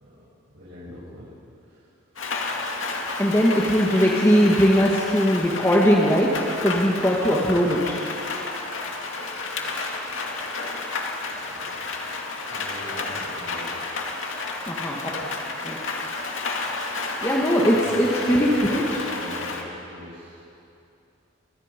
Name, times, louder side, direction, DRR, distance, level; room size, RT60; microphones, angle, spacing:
voice 1, 0.5-1.3 1.6-1.8 12.5-13.9 17.7-20.4, equal, 65° right, -10 dB, 7.5 m, -40 dB
Rain, 2.2-19.6, left 3 dB, 70° left, 2.3 m, -31 dB
voice 2, 3.2-6.3 6.6-8.0 14.7-15.3 15.6-15.8 17.2-19.0, equal, 15° left, -4 dB, 1.9 m, -20 dB
29.0 x 20.0 x 5.3 m, 2.7 s
head